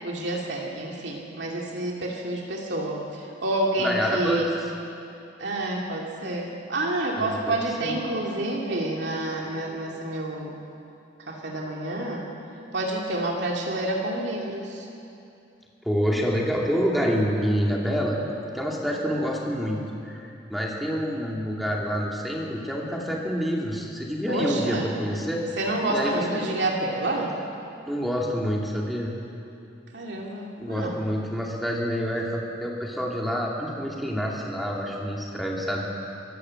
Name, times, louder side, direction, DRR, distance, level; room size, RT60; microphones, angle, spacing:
voice 1, 0.0-4.5 5.4-10.6 11.3-12.2 12.7-14.9 24.3-24.9 25.6-27.3 29.9-30.9, right 1 dB, 70° right, -1 dB, 2.6 m, -28 dB
voice 2, 3.8-4.4 7.2-8.0 15.8-18.2 18.5-19.8 20.1-25.4 25.9-26.2 27.9-29.1 30.6-35.8, equal, ahead, -3 dB, 2.5 m, -27 dB
25.0 x 13.5 x 7.8 m, 2.7 s
head